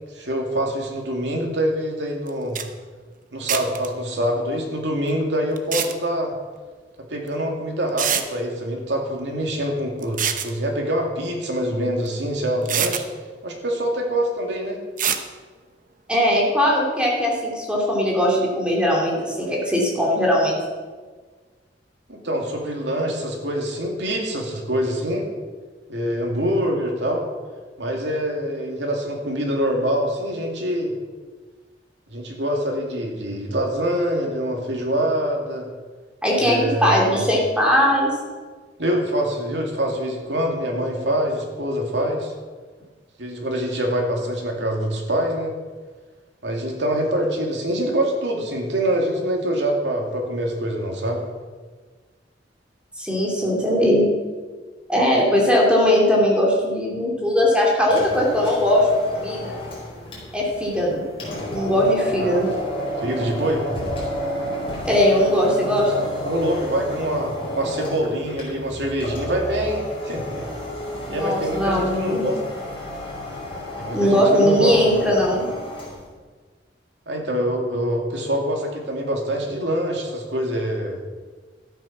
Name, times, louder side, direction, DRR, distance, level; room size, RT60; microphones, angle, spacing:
voice 1, 0.1-2.6 3.3-6.3 7.1-13.0 13.4-14.8 22.1-25.3 25.9-27.2 27.8-30.9 32.1-35.7 36.4-37.2 38.8-42.3 43.2-45.5 46.4-51.2 62.2-62.4 63.0-63.7 66.2-70.4 71.1-72.4 73.8-74.7 77.1-81.0, equal, 75° right, 1 dB, 2.4 m, -25 dB
sound 1, 2.3-2.4 2.6-2.7 3.5-3.9 5.6-5.9 7.3-7.4 8.0-8.3 10.0-10.5 12.1-12.2 12.7-13.0 15.0-15.2, right 8 dB, 50° right, 0.9 m, -24 dB
voice 2, 16.1-20.6 36.2-38.2 53.0-54.1 54.9-59.5 60.3-61.0 61.4-62.5 64.8-65.9 71.1-72.2 73.9-75.5, equal, 5° right, -3 dB, 2.8 m, -19 dB
sound 2, 57.8-76.1, equal, 30° left, 4.6 m, -32 dB
13.0 x 8.8 x 5.9 m, 1.4 s
head